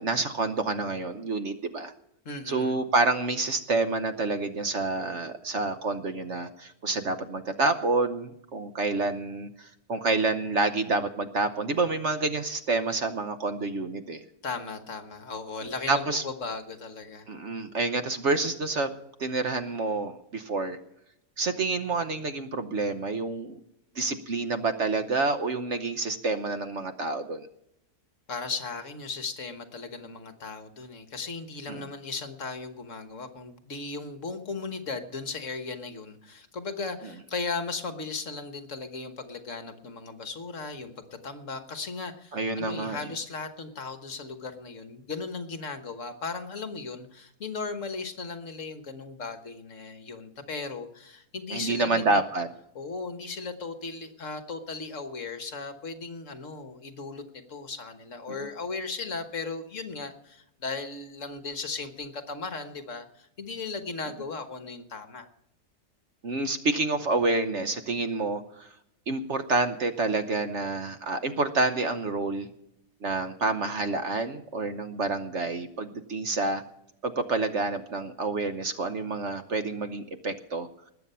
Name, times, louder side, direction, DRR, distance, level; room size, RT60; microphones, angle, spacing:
voice 1, 0.0-1.9 2.5-14.2 15.9-16.2 17.3-18.9 19.2-20.8 21.4-23.6 23.9-27.5 31.7-31.9 42.3-43.0 51.5-52.5 58.3-58.4 66.2-68.7 69.1-72.5 73.0-76.6 77.0-80.7, right 3 dB, 55° right, 9 dB, 1.1 m, -28 dB
voice 2, 2.2-2.8 14.4-17.3 28.3-52.2 52.7-57.2 57.5-65.3, left 4 dB, 55° left, 7 dB, 1.6 m, -37 dB
20.0 x 8.4 x 5.6 m, 0.77 s
omnidirectional pair, 1.7 m